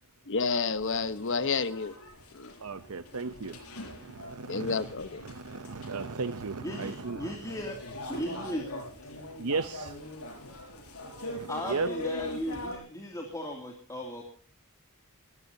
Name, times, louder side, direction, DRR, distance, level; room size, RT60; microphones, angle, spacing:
voice 1, 0.3-1.9 2.3-2.5 4.5-5.2, left 4 dB, 60° left, 13 dB, 1.1 m, -30 dB
sound 1, 0.7-12.8, left 1 dB, 80° left, 6.7 m, -42 dB
voice 2, 2.6-7.6 9.4-10.0 11.0-11.9, right 4 dB, 75° right, 13 dB, 0.8 m, -36 dB
voice 3, 6.6-7.8 8.1-8.7 11.5-14.2, left 1 dB, 15° left, 1 dB, 2.7 m, -36 dB
23.0 x 14.0 x 2.8 m, 0.42 s
head